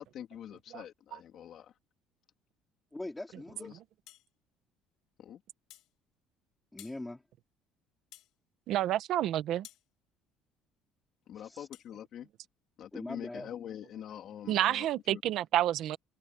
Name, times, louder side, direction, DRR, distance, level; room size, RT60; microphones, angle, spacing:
voice 1, 0.0-1.7 3.6-3.7 5.2-5.4 11.3-12.3 12.8-15.2, left 10 dB, 40° left, 3.6 m, -45 dB
voice 2, 2.9-3.7 6.7-7.2 11.4-11.7 12.9-13.5, left 2 dB, 5° left, 3.8 m, -41 dB
sound 1, 4.1-4.3 5.7-5.9 6.8-7.0 8.1-8.3 9.6-9.9 11.7-11.9, left 14 dB, 60° left, 2.3 m, -53 dB
voice 3, 8.7-9.7 14.5-16.0, right 12 dB, 50° right, 1.3 m, -29 dB
open air
cardioid pair, 180°, 0 cm